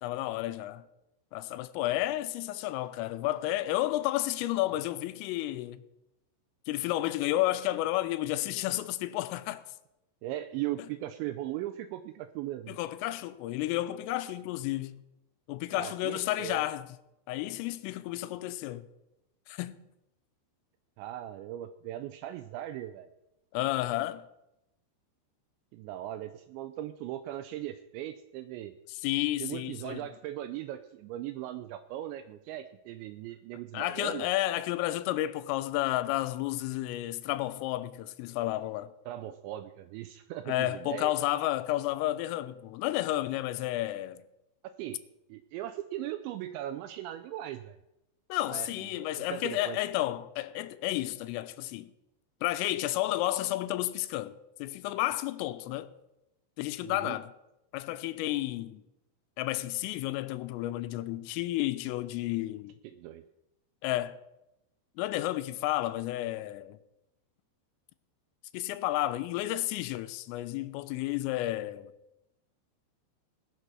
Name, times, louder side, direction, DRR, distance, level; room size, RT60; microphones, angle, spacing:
voice 1, 0.0-0.8 1.3-5.8 6.7-9.6 12.7-15.0 15.5-16.9 17.3-18.9 19.5-19.8 23.5-24.2 28.9-30.0 33.7-38.9 40.5-44.2 48.3-51.9 52.4-55.9 56.6-57.3 57.7-58.8 59.4-62.7 63.8-64.1 65.0-66.8 68.5-71.9, left 15 dB, 90° left, 3.3 m, -31 dB
voice 2, 10.2-12.7 15.7-16.7 21.0-23.1 25.7-28.7 29.4-34.3 39.1-41.1 44.8-45.0 45.3-47.8 48.5-49.8 56.8-57.2 62.8-63.2, right 13 dB, 85° right, 2.6 m, -39 dB
19.5 x 6.7 x 6.2 m
omnidirectional pair, 5.7 m